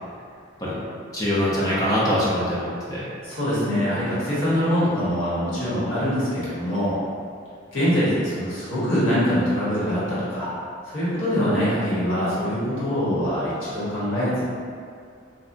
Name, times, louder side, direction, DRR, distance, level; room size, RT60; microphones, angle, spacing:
voice 1, 1.1-3.1, equal, 20° left, -8 dB, 0.4 m, -23 dB
voice 2, 3.2-7.0 7.7-10.5 10.9-14.4, equal, 75° left, -11 dB, 1.2 m, -23 dB
2.8 x 2.2 x 2.5 m, 2.3 s
head